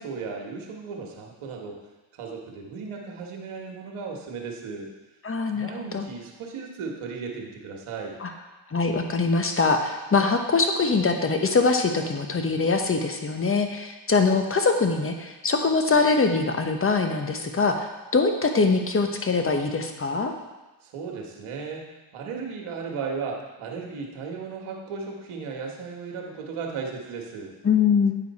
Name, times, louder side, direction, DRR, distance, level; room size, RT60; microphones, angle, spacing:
voice 1, 0.0-1.8 2.2-4.9 5.5-8.2 20.8-27.5, right 5 dB, 80° right, 0 dB, 1.5 m, -35 dB
voice 2, 5.2-6.0 8.2-8.3 8.7-20.3 27.6-28.2, left 4 dB, 25° left, 5 dB, 1.1 m, -23 dB
8.8 x 5.0 x 4.2 m, 1.1 s
supercardioid pair, 65°, 49 cm